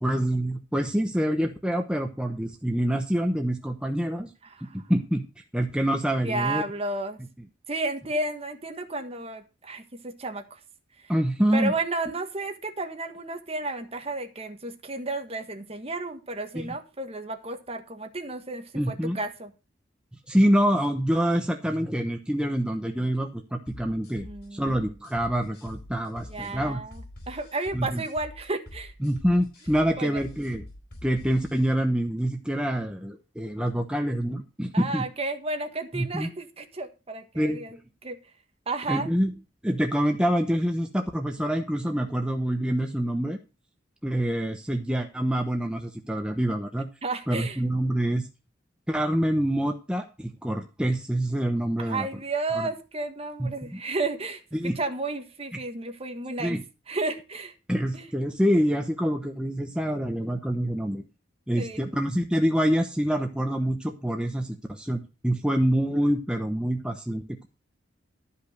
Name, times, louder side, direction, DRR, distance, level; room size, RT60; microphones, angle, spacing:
voice 1, 0.0-4.3 4.7-5.2 5.5-6.6 11.1-11.7 16.5-16.7 18.7-19.2 20.3-26.8 27.7-28.0 29.0-30.6 31.0-35.0 35.9-36.3 37.3-37.6 38.9-39.3 39.6-43.4 44.0-46.9 47.3-48.2 48.9-52.1 52.5-52.7 53.4-53.8 54.5-54.8 56.4-56.6 57.7-61.0 61.5-67.2, equal, 5° right, 3 dB, 0.9 m, -26 dB
voice 2, 4.5-4.8 6.2-7.2 7.7-10.6 11.0-11.1 11.5-19.5 24.2-24.9 26.3-28.9 30.0-30.2 34.7-37.8 38.0-38.2 38.7-39.1 47.0-47.6 51.8-56.6 56.9-57.5 57.9-58.0 61.6-61.8, right 2 dB, 30° right, 6 dB, 1.5 m, -32 dB
sound 1, 23.7-31.6, left 1 dB, 55° left, 4.4 m, -45 dB
12.5 x 5.6 x 6.5 m, 0.30 s
head